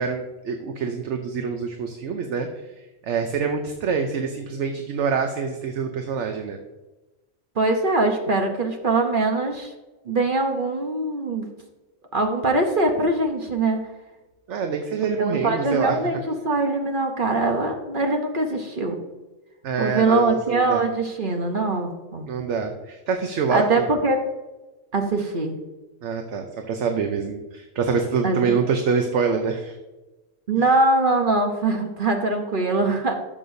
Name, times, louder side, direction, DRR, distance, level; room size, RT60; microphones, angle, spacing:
voice 1, 0.0-2.5 3.0-6.6 14.5-16.0 19.6-20.8 22.3-23.8 26.0-29.7, right 5 dB, 65° right, 5 dB, 1.0 m, -25 dB
voice 2, 7.6-9.7 10.1-11.5 12.1-13.8 15.2-19.0 19.8-22.3 23.5-24.2 24.9-25.6 28.2-28.4 30.5-33.1, right 2 dB, 45° right, 4 dB, 1.0 m, -22 dB
12.5 x 6.7 x 2.6 m, 1.1 s
omnidirectional pair, 1.4 m